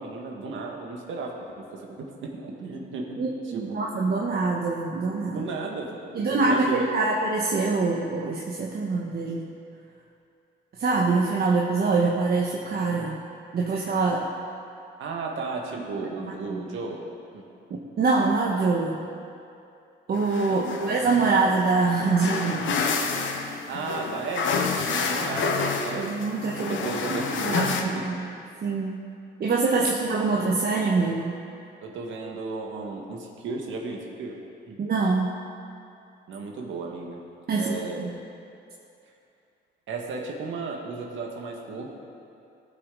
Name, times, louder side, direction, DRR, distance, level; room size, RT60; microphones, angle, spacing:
voice 1, 0.0-3.9 5.3-6.9 15.0-17.0 17.3-17.5 20.5-20.7 23.7-28.0 29.7-29.9 31.8-34.8 36.3-37.2 37.5-38.1 39.0-39.1 39.9-41.9, right 3 dB, 75° right, 0 dB, 1.8 m, -35 dB
voice 2, 3.6-5.4 6.1-9.5 10.8-13.2 13.5-14.3 16.2-16.6 17.7-19.0 20.1-22.8 26.0-28.2 28.6-29.0 29.4-31.4 34.8-35.4 37.5-38.1, right 3 dB, 50° right, -2 dB, 1.1 m, -25 dB
sound 1, 20.2-27.8, left 5 dB, 75° left, 1.0 m, -29 dB
18.0 x 6.3 x 3.9 m, 2.6 s
cardioid pair, 90°, 20 cm